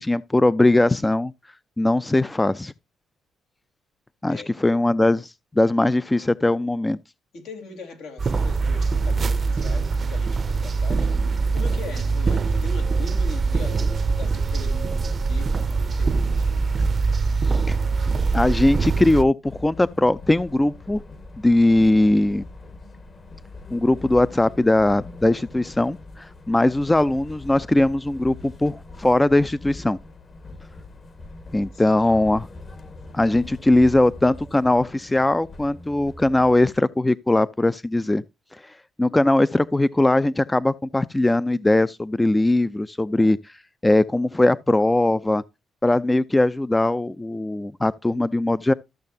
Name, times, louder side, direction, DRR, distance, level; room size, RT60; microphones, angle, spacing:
voice 1, 0.0-1.3 1.8-2.7 4.2-7.0 17.7-17.8 18.3-21.0 21.4-22.4 23.7-30.0 31.5-32.5 33.1-38.2 38.6-38.7 39.0-43.4 43.8-45.4 45.8-48.7, left 2 dB, 15° left, 0.4 m, -20 dB
voice 2, 7.3-11.1 11.5-16.7 31.7-32.1, left 4 dB, 80° left, 3.9 m, -40 dB
sound 1, 8.2-19.2, right 4 dB, 40° right, 0.6 m, -23 dB
sound 2, 19.4-36.8, left 2 dB, 40° left, 1.4 m, -42 dB
14.0 x 6.5 x 2.7 m
cardioid pair, 90°, 0 cm